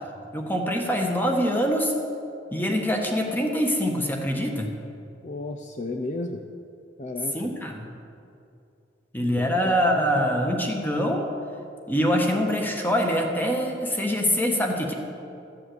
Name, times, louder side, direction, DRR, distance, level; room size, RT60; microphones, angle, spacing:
voice 1, 0.3-1.9 2.5-4.7 7.3-7.9 9.1-11.3 11.9-14.9, equal, 10° left, 2 dB, 1.5 m, -24 dB
voice 2, 5.2-6.4 7.0-7.4 9.4-10.1, left 2 dB, 40° left, 4 dB, 0.6 m, -33 dB
13.5 x 7.6 x 7.9 m, 2.5 s
head